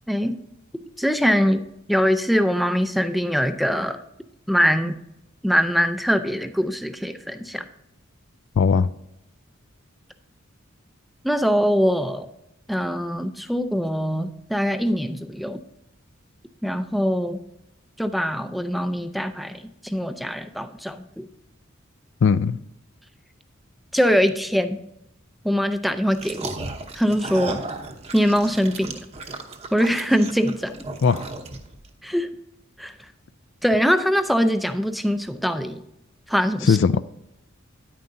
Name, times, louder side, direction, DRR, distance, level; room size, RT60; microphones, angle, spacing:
voice 1, 1.0-4.0 4.5-4.9 5.4-7.7 11.2-12.3 12.7-15.6 16.6-17.4 18.0-21.3 23.9-24.8 25.4-26.6 26.9-27.6 28.1-28.9 29.7-30.8 32.0-32.3 32.8-32.9 33.6-35.8 36.3-36.8, equal, ahead, 0.4 m, -22 dB
voice 2, 8.6-8.9 22.2-22.6 31.0-31.2 36.6-37.0, left 5 dB, 60° left, 0.3 m, -18 dB
sound 1, 26.1-31.9, right 3 dB, 30° right, 0.9 m, -35 dB
9.8 x 9.2 x 2.6 m
head